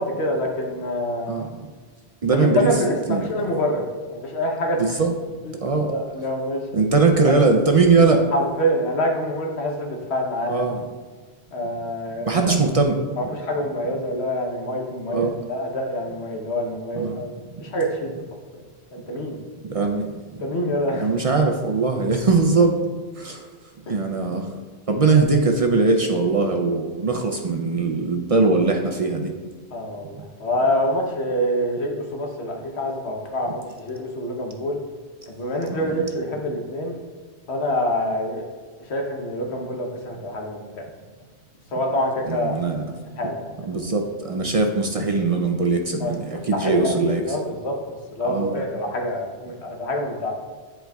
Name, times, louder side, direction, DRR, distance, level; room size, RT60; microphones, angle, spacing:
voice 1, 0.0-1.4 2.3-4.9 5.4-5.5 5.9-6.8 7.2-7.3 8.3-10.7 11.5-12.6 13.2-17.3 17.6-18.1 18.9-19.4 20.4-21.1 23.9-24.0 29.7-34.8 35.4-37.0 37.5-38.4 38.9-40.8 41.7-42.6 43.2-43.6 46.0-50.3, equal, 80° left, 1 dB, 1.2 m, -26 dB
voice 2, 2.2-2.7 3.1-3.3 4.8-5.1 5.6-5.9 6.7-8.3 10.5-10.8 12.2-13.0 15.1-15.4 17.0-17.2 19.6-20.5 20.9-22.7 23.2-23.5 23.9-24.5 24.9-29.3 35.7-36.0 42.3-42.8 43.6-47.4 48.2-48.6, right 4 dB, 50° right, 2 dB, 0.4 m, -21 dB
10.0 x 4.4 x 2.3 m, 1.5 s
omnidirectional pair, 1.1 m